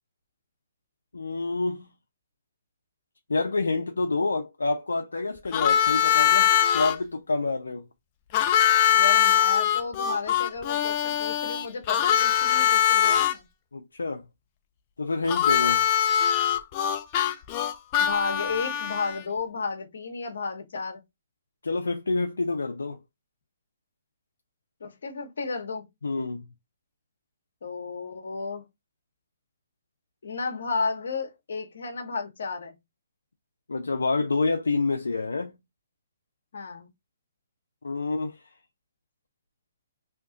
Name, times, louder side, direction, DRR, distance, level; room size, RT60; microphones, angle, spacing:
voice 1, 1.1-1.9 3.3-7.9 13.7-14.2 15.0-15.9 21.6-23.0 26.0-26.4 33.7-35.6 37.8-38.4, left 3 dB, 90° left, 0.4 m, -28 dB
Harmonica, 5.5-7.0 8.3-13.3 15.3-19.2, left 9 dB, 35° left, 0.4 m, -22 dB
voice 2, 8.9-13.4 18.0-21.0 24.8-25.9 27.6-28.6 30.2-32.7 36.5-36.9, left 4 dB, 70° left, 1.0 m, -33 dB
2.8 x 2.3 x 3.7 m
hypercardioid pair, 145°, 0 cm